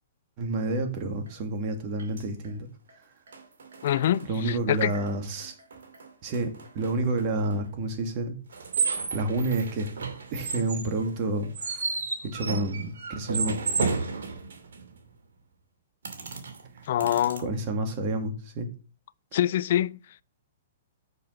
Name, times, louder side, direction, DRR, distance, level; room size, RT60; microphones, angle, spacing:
voice 1, 0.4-2.7 4.3-5.5 6.2-8.3 9.1-9.9 10.3-13.6 17.4-18.7, right 2 dB, 45° right, 2.3 m, -29 dB
sound 1, 1.3-1.4 2.0-2.5 2.9-3.0 3.3-5.1 5.4-7.5 8.5-15.0 16.0-17.4, right 4 dB, 75° right, 2.3 m, -33 dB
voice 2, 3.8-4.9 16.9-17.5 19.3-20.2, left 12 dB, 60° left, 0.3 m, -25 dB
6.8 x 5.3 x 5.8 m
hypercardioid pair, 125°, 0 cm